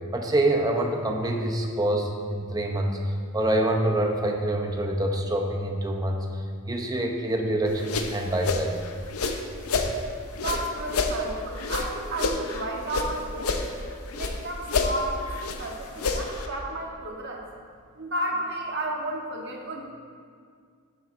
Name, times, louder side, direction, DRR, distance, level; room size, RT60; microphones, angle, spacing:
voice 1, 0.1-3.0 3.3-6.3 6.7-8.7, right 1 dB, 15° right, 2 dB, 0.7 m, -26 dB
sound 1, 7.7-9.9 10.3-13.1 13.4-14.4 14.7-16.5, left 3 dB, 80° left, 0.7 m, -29 dB
voice 2, 10.4-13.6 14.1-15.3 15.6-17.4 18.0-19.8, right 1 dB, 55° right, 0 dB, 1.2 m, -32 dB
12.5 x 7.4 x 2.6 m, 2.1 s
head